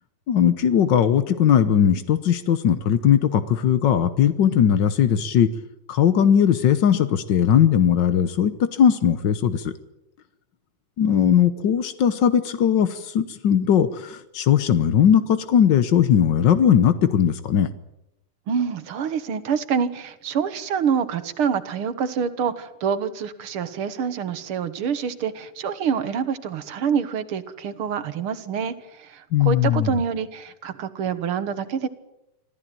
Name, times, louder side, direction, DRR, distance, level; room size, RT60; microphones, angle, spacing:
voice 1, 0.3-5.5 5.9-9.7 11.0-17.7 29.3-29.9, left 9 dB, 80° left, 12 dB, 1.0 m, -19 dB
voice 2, 18.5-31.9, right 7 dB, 55° right, 13 dB, 1.8 m, -26 dB
25.5 x 15.5 x 9.2 m, 0.91 s
omnidirectional pair, 3.5 m